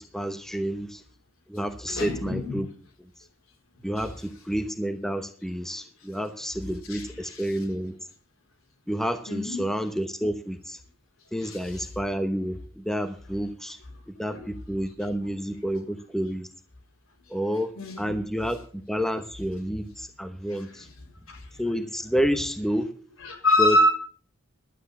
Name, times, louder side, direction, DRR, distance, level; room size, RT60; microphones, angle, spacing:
voice 1, 0.1-1.0 1.5-2.7 3.8-7.9 8.9-10.8 11.3-13.8 14.2-16.5 17.3-17.7 18.0-20.9 21.6-22.9 23.6-23.8, equal, ahead, 8 dB, 0.9 m, -29 dB
voice 2, 1.9-2.6 4.0-4.1 6.9-7.6 9.3-9.6 11.4-11.8 14.3-14.4 17.8-18.2 20.5-20.9 21.3-21.6 23.2-23.9, left 1 dB, 80° left, 2 dB, 4.5 m, -26 dB
12.0 x 9.2 x 7.3 m, 0.43 s
head